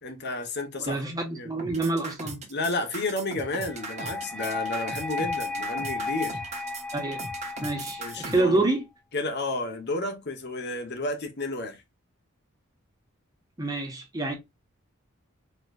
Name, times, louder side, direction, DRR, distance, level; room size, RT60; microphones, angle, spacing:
voice 1, 0.0-1.0 1.3-1.5 2.5-6.4 8.0-8.6 9.1-11.8, left 2 dB, 55° left, 1.2 m, -31 dB
voice 2, 0.8-2.4 6.9-7.2 7.6-8.8 13.6-14.4, right 2 dB, 20° right, 1.5 m, -27 dB
sound 1, 1.6-8.4, right 3 dB, 35° right, 1.2 m, -38 dB
sound 2, 3.6-8.6, left 3 dB, 5° left, 0.6 m, -34 dB
4.3 x 3.1 x 2.5 m
head